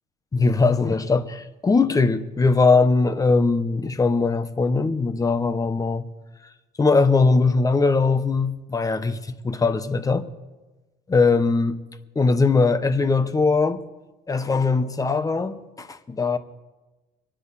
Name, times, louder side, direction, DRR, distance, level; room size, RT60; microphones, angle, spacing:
voice 1, 0.3-6.0 6.8-10.3 11.1-11.8 12.1-13.8 14.3-16.4, left 4 dB, 20° left, 1.0 m, -20 dB
25.0 x 10.0 x 4.2 m
cardioid pair, 110°, 17 cm